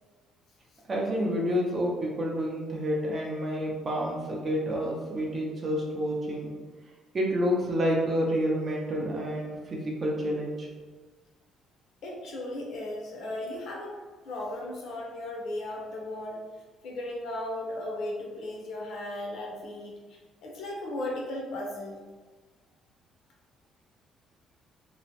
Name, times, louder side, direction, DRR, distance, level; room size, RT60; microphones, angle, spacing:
voice 1, 0.9-6.5 7.1-10.7, equal, 30° right, -2 dB, 0.5 m, -29 dB
voice 2, 12.0-14.0 14.2-16.4 16.8-22.0, left 1 dB, 60° left, -2 dB, 0.7 m, -36 dB
2.9 x 2.0 x 2.9 m, 1.4 s
cardioid pair, 160°, 0 cm